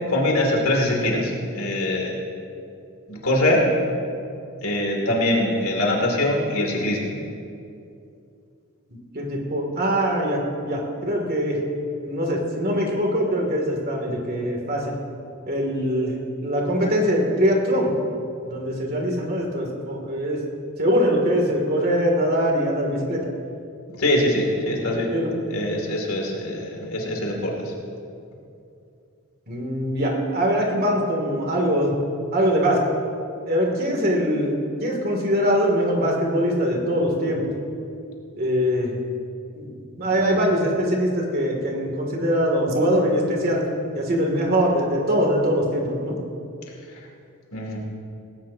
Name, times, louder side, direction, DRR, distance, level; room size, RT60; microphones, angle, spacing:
voice 1, 0.1-2.2 3.1-3.7 4.6-7.1 23.9-25.1 25.5-27.7 40.1-40.4 46.9-47.1 47.5-47.8, left 1 dB, 70° left, -1 dB, 2.7 m, -23 dB
voice 2, 9.1-11.6 12.0-14.9 15.5-17.9 18.4-20.4 20.8-23.2 25.1-25.3 29.5-32.0 32.3-32.8 33.5-37.4 38.4-38.9 39.5-43.6 43.9-46.2, equal, 45° right, 0 dB, 2.7 m, -22 dB
19.0 x 17.0 x 2.9 m, 2.6 s
head